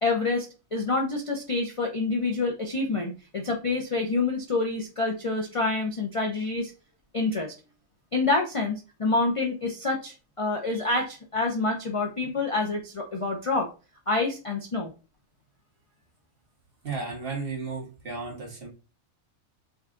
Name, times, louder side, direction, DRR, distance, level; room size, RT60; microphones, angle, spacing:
voice 1, 0.0-6.7 7.1-7.5 8.1-13.7 14.1-14.9, left 3 dB, 35° left, 0 dB, 0.5 m, -27 dB
voice 2, 16.8-18.7, right 4 dB, 45° right, -1 dB, 1.5 m, -34 dB
5.4 x 2.3 x 3.8 m, 0.32 s
omnidirectional pair, 1.4 m